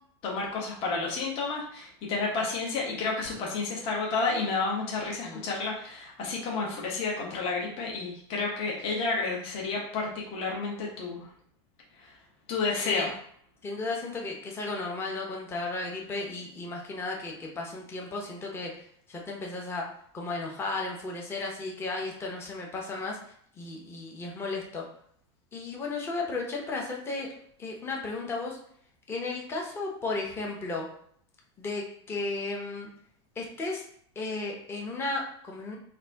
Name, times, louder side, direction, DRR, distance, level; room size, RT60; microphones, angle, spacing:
voice 1, 0.2-11.3 12.0-12.1 12.5-13.1, left 3 dB, 40° left, -2 dB, 0.9 m, -31 dB
voice 2, 13.6-18.7 19.1-19.9 20.1-23.2 23.6-24.8 25.5-27.3 27.6-28.6 29.1-30.9 31.6-32.9 33.4-33.8 34.2-35.8, left 3 dB, 15° left, -1 dB, 0.7 m, -34 dB
4.1 x 2.6 x 3.3 m, 0.62 s
supercardioid pair, 150°, 15 cm